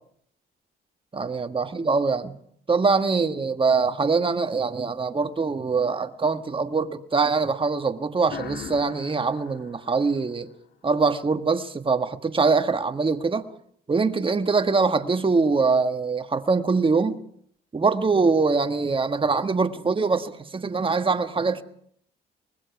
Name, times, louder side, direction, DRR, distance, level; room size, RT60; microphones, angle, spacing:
voice 1, 1.1-2.3 2.7-10.5 10.8-13.5 13.9-17.2 17.7-21.6, right 4 dB, 25° right, 1.5 m, -23 dB
sound 1, 8.3-10.9, left 7 dB, 65° left, 3.6 m, -41 dB
24.5 x 20.0 x 5.9 m
cardioid pair, 90°, 20 cm